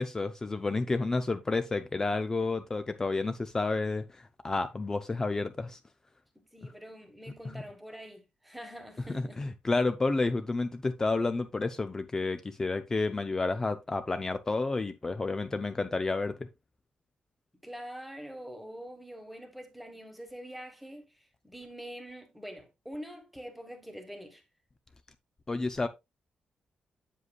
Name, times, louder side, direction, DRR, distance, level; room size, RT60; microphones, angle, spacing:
voice 1, 0.0-5.8 6.6-6.7 7.5-7.6 9.1-16.5 25.5-25.9, left 3 dB, 20° left, 0.4 m, -30 dB
voice 2, 6.3-9.4 17.6-21.0 21.4-24.4, equal, ahead, 1.4 m, -45 dB
8.1 x 7.5 x 2.3 m
wide cardioid pair, 175°, 3 cm